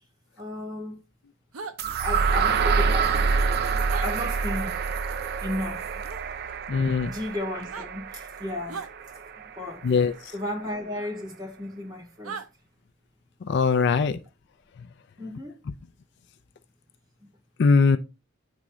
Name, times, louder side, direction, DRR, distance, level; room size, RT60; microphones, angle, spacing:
voice 1, 0.4-1.0 1.8-3.5 3.8-4.7 5.4-6.0 7.1-8.9 9.4-9.8 10.3-12.4 15.2-15.6, left 1 dB, 20° right, 2.4 m, -34 dB
sound 1, 1.5-1.8 3.9-4.1 6.0-6.2 7.6-7.9 8.7-8.9 11.0-11.1 12.2-12.5, right 5 dB, 85° right, 0.7 m, -37 dB
sound 2, 1.8-9.7, right 5 dB, 45° right, 0.3 m, -27 dB
voice 2, 6.7-7.1 9.8-10.1 13.5-14.2 17.6-18.0, left 5 dB, 55° left, 0.4 m, -20 dB
9.5 x 3.7 x 3.0 m
head